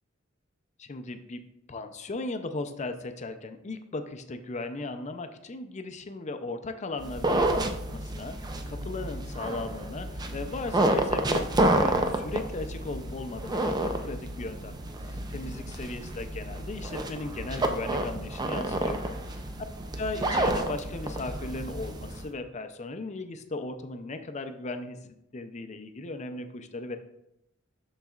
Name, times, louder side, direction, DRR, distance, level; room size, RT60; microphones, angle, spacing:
voice 1, 0.8-1.4 1.7-14.7 15.0-19.0 19.3-19.4 20.0-25.0 25.3-27.0, left 2 dB, 35° left, 8 dB, 0.5 m, -37 dB
sound 1, 7.0-22.3, right 1 dB, 20° right, 0.5 m, -30 dB
12.0 x 4.0 x 2.4 m, 0.84 s
head